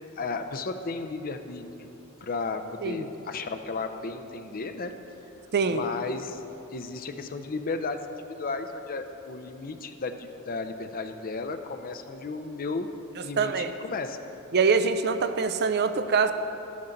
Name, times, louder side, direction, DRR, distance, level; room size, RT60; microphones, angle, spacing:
voice 1, 0.2-1.9 2.2-4.9 5.7-6.4 6.7-12.9 13.2-14.2, left 3 dB, 45° left, 8 dB, 0.5 m, -34 dB
voice 2, 5.5-5.8 13.4-13.7 14.5-16.3, right 5 dB, 50° right, 9 dB, 0.5 m, -24 dB
12.0 x 9.5 x 3.9 m, 3.0 s
head